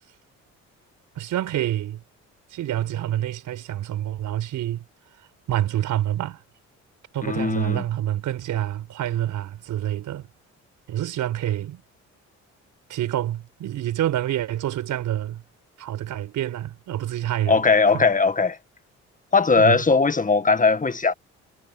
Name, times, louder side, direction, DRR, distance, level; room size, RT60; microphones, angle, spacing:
voice 1, 1.1-2.0 2.5-4.8 5.5-6.4 7.1-10.3 10.9-11.8 12.9-15.4 15.8-17.6 17.9-18.0 19.5-19.8, right 12 dB, 80° right, 4.9 m, -27 dB
voice 2, 7.2-7.8 17.5-18.6 19.3-21.1, left 4 dB, 25° left, 1.7 m, -19 dB
cardioid pair, 90°, 30 cm